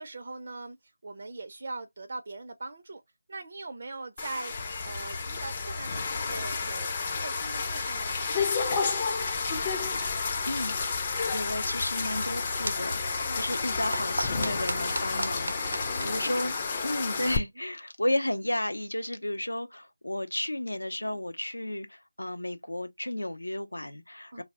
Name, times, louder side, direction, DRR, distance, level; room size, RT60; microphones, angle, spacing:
voice 1, 0.0-3.0 3.3-9.6 13.3-13.4 15.5-16.4 21.0-21.2 24.3-24.4, right 3 dB, 45° right, 0.4 m, -42 dB
sound 1, 4.2-17.4, left 5 dB, 25° left, 0.4 m, -31 dB
sound 2, 4.5-16.2, left 2 dB, 45° left, 0.8 m, -42 dB
voice 2, 10.5-10.8 11.3-16.5 16.8-24.4, left 1 dB, 90° left, 0.6 m, -33 dB
sound 3, 12.0-17.2, right 1 dB, 80° right, 0.6 m, -38 dB
2.3 x 2.0 x 3.4 m
figure-of-eight pair, 165°, 0 cm